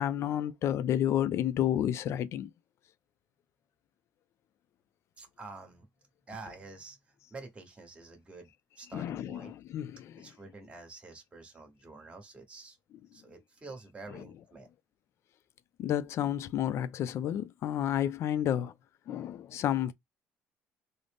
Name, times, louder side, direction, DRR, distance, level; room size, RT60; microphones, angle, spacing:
voice 1, 0.0-2.5 8.9-10.3 15.8-18.7 19.1-19.9, left 11 dB, 60° left, 0.4 m, -31 dB
voice 2, 5.2-5.9 6.3-7.0 7.3-8.5 8.8-9.5 10.2-12.8 13.1-14.7, right 3 dB, 20° right, 1.1 m, -48 dB
3.8 x 2.0 x 3.4 m
cardioid pair, 110°, 5 cm